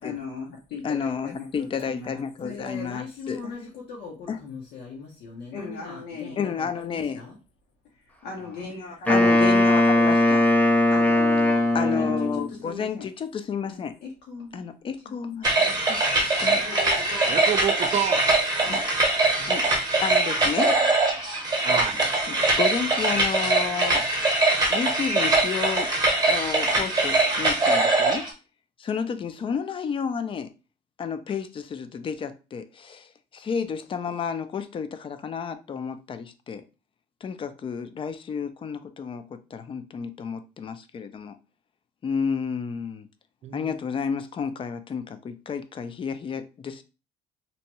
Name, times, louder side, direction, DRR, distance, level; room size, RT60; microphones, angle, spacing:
voice 1, 0.0-7.3 8.2-9.5 10.9-13.1 13.7-14.7 15.1-15.2 15.6-15.8 16.4-17.4 17.8-17.9 18.6-18.8, left 4 dB, 75° left, 0.7 m, -38 dB
voice 2, 0.8-3.4 4.3-4.4 6.4-7.2 9.1-10.4 11.7-14.0 14.5-15.5 15.8-16.0 16.4-16.7 18.7-18.8 19.5-19.7 20.0-20.8 22.3-24.0 24.7-25.9 26.3-28.3 28.8-30.5 31.0-36.6 37.2-41.4 42.0-43.1 43.5-46.8, left 6 dB, 30° left, 0.3 m, -31 dB
Wind instrument woodwind instrument, 9.1-12.5, left 1 dB, 10° left, 0.7 m, -19 dB
sound 1, 15.4-28.3, right 2 dB, 25° right, 0.8 m, -22 dB
voice 3, 17.2-18.2 19.4-19.5 21.6-22.0 43.4-43.8, right 9 dB, 40° right, 0.4 m, -29 dB
2.7 x 2.2 x 2.8 m
cardioid pair, 110°, 17 cm